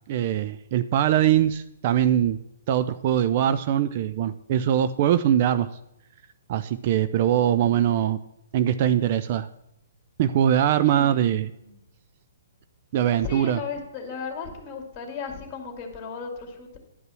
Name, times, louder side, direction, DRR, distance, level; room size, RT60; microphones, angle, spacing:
voice 1, 0.1-2.4 2.7-5.7 6.5-8.2 8.5-9.5 10.2-11.5 12.9-13.6, right 10 dB, 40° right, 11 dB, 0.4 m, -22 dB
voice 2, 10.8-11.8 13.2-16.8, left 5 dB, 25° left, 2 dB, 2.4 m, -36 dB
11.0 x 5.3 x 7.5 m, 0.81 s
figure-of-eight pair, 120°, 0 cm